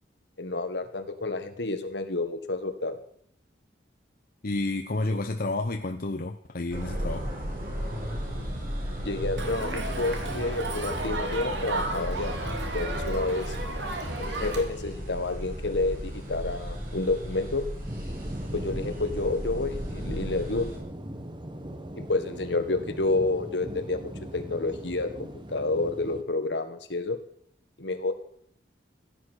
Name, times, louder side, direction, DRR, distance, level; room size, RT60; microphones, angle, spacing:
voice 1, 0.4-3.0 9.0-12.3 12.7-13.6 14.2-17.6 18.5-20.7 22.0-27.2 27.8-28.1, left 2 dB, 70° left, 8 dB, 1.7 m, -29 dB
voice 2, 4.4-7.3, left 2 dB, 55° left, 5 dB, 0.8 m, -30 dB
sound 1, 6.7-20.8, equal, 50° right, 6.1 m, -35 dB
Crowd, 9.4-14.6, right 2 dB, 75° right, 2.6 m, -33 dB
sound 2, 15.5-26.2, right 1 dB, 25° right, 1.2 m, -40 dB
16.0 x 10.0 x 6.5 m, 0.67 s
head